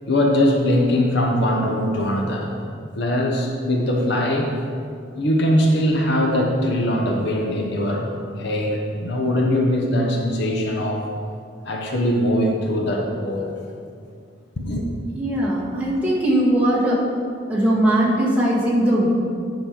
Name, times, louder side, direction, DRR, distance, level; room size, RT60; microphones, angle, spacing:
voice 1, 0.1-2.6 2.9-4.5 5.1-8.1 8.4-11.1 11.6-13.5 14.6-14.8, left 1 dB, 60° left, 0 dB, 1.0 m, -21 dB
voice 2, 15.2-17.0 17.5-19.1, right 1 dB, 10° right, -7 dB, 1.9 m, -19 dB
10.0 x 5.5 x 5.1 m, 2.3 s
head